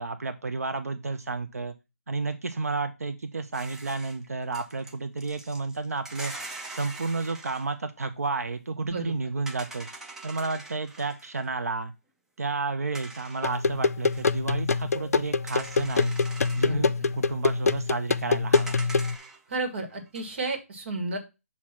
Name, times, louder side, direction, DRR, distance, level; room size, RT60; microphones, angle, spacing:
voice 1, 0.0-1.7 2.1-6.3 6.7-9.9 10.2-11.9 12.4-16.1 16.5-18.8, right 3 dB, 85° right, 8 dB, 0.7 m, -31 dB
sound 1, 3.5-7.7 9.5-11.5 12.9-13.6 14.1-14.3 15.5-16.8 18.5-19.5 19.9-20.5, right 2 dB, 5° right, 0.5 m, -43 dB
voice 2, 8.9-9.3 16.5-17.2 19.5-21.2, right 2 dB, 50° right, 3 dB, 1.8 m, -33 dB
sound 2, 13.4-19.2, left 4 dB, 80° left, 0.4 m, -25 dB
6.5 x 2.9 x 5.8 m, 0.27 s
hypercardioid pair, 155°, 8 cm